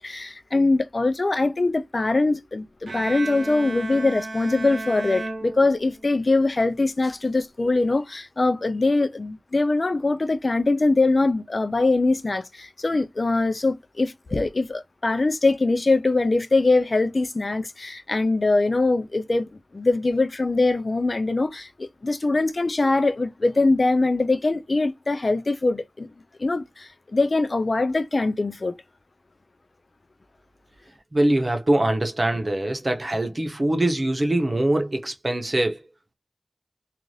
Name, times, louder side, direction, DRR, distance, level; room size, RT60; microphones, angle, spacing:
voice 1, 0.0-26.1 26.4-28.7, left 3 dB, 55° left, 0.5 m, -22 dB
Bowed string instrument, 2.9-6.2, right 2 dB, 80° right, 0.8 m, -34 dB
voice 2, 31.1-35.8, right 1 dB, 40° right, 0.8 m, -23 dB
2.6 x 2.4 x 3.1 m
wide cardioid pair, 70°, 0 cm